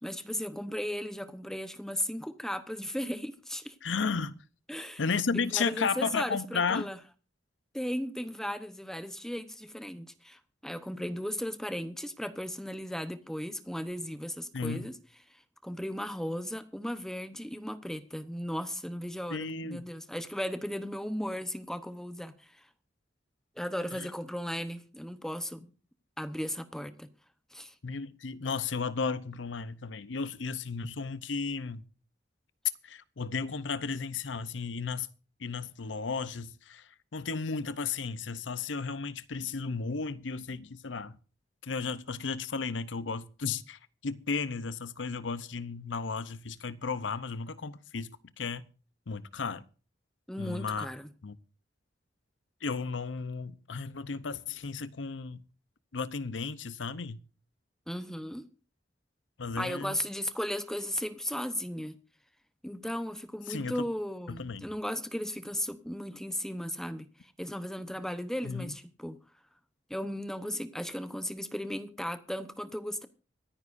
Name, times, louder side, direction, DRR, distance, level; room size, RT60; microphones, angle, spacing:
voice 1, 0.0-3.7 4.7-5.0 5.3-7.0 7.7-14.9 15.6-22.5 23.6-25.7 26.2-27.1 27.5-27.7 50.3-51.1 57.9-58.5 59.6-62.0 62.6-69.2 69.9-73.1, equal, 5° left, 0.9 m, -36 dB
voice 2, 3.8-4.4 5.0-6.9 14.5-14.9 19.3-19.9 23.9-24.1 27.8-31.8 32.8-35.1 35.4-41.2 41.6-48.6 49.1-49.6 50.4-50.9 51.2-51.4 52.6-55.4 55.9-57.2 59.4-60.0 63.5-63.9 64.3-64.7 68.4-68.7, left 5 dB, 85° left, 0.7 m, -34 dB
25.0 x 9.7 x 2.6 m
head